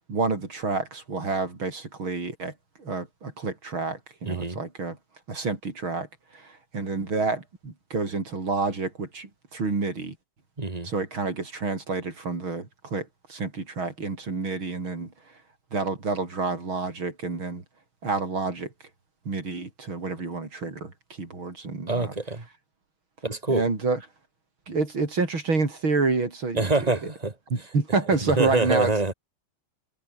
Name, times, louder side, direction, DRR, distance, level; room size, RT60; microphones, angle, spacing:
voice 1, 0.1-2.5 2.8-5.0 5.3-6.1 6.3-10.2 10.8-15.1 15.7-17.6 18.0-18.7 19.3-22.1 23.5-24.0 24.7-27.1 27.5-28.9, right 3 dB, 75° right, 5.4 m, -28 dB
voice 2, 4.2-4.6 10.6-10.9 21.9-22.4 23.2-23.6 26.6-27.3 28.2-29.1, right 3 dB, 20° right, 2.1 m, -25 dB
omnidirectional pair, 2.2 m